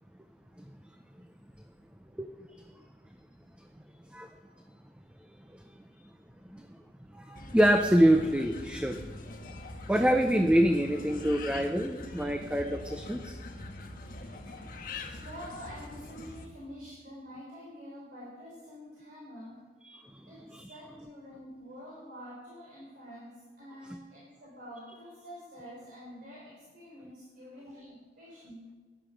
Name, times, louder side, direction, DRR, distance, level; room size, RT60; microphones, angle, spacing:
voice 1, 6.5-6.8 7.1-9.0 9.9-13.4 15.1-15.2 19.8-20.2 20.5-20.8, equal, 5° right, 5 dB, 0.6 m, -26 dB
sound 1, 7.3-16.5, left 2 dB, 50° left, 1.5 m, -43 dB
voice 2, 15.2-19.6 20.2-28.7, equal, 55° right, -5 dB, 4.0 m, -47 dB
17.0 x 11.5 x 5.1 m, 1.5 s
head